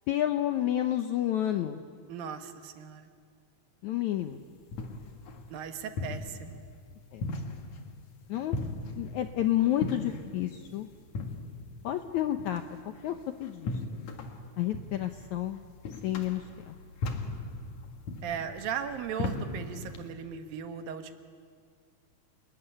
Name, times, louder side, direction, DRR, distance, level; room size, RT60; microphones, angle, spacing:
voice 1, 0.1-1.8 3.8-4.4 7.1-7.3 8.3-8.6 9.0-10.9 11.8-12.6 13.0-13.7 14.6-15.6 16.0-16.7, left 12 dB, 75° left, 7 dB, 1.7 m, -30 dB
voice 2, 2.1-3.1 5.5-6.6 18.2-21.1, right 7 dB, 70° right, 7 dB, 3.1 m, -37 dB
sound 1, 4.2-20.1, left 3 dB, 55° left, 2.9 m, -39 dB
28.5 x 21.0 x 10.0 m, 2.1 s
omnidirectional pair, 4.3 m